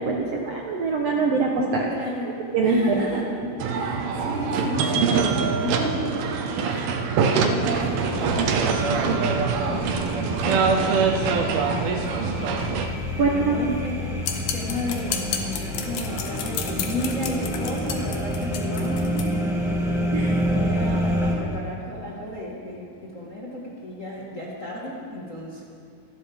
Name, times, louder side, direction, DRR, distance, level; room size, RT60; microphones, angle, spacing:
voice 1, 0.0-1.9 2.5-3.0 13.2-13.5 20.1-20.4, right 4 dB, 65° right, -1 dB, 1.6 m, -23 dB
voice 2, 1.9-3.3 3.7-6.2 6.7-12.0 13.1-14.2 14.5-19.5 20.4-25.6, left 1 dB, 35° left, -5 dB, 1.2 m, -34 dB
sound 1, 3.6-12.9, right 5 dB, 85° right, 2.9 m, -24 dB
sound 2, 7.7-21.3, equal, ahead, 0.7 m, -28 dB
sound 3, 14.2-19.3, left 8 dB, 90° left, 3.2 m, -32 dB
27.5 x 12.0 x 3.6 m, 2.4 s
omnidirectional pair, 4.3 m